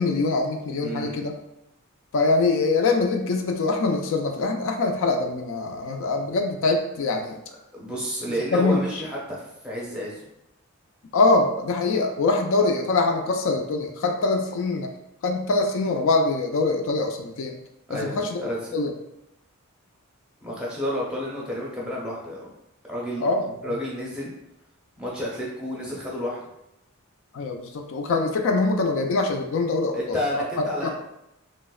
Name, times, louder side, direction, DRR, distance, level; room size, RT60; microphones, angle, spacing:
voice 1, 0.0-1.3 2.1-7.4 8.5-8.8 11.1-14.9 15.2-17.6 17.9-18.4 18.7-18.9 23.2-23.4 27.3-30.2 30.8-30.9, left 3 dB, 60° left, 4 dB, 0.4 m, -23 dB
voice 2, 0.8-1.3 7.7-10.3 17.9-18.8 20.4-22.6 22.9-23.2 23.6-24.3 25.0-26.4 29.9-30.9, equal, 5° right, -5 dB, 0.6 m, -31 dB
3.3 x 2.0 x 2.3 m, 0.83 s
head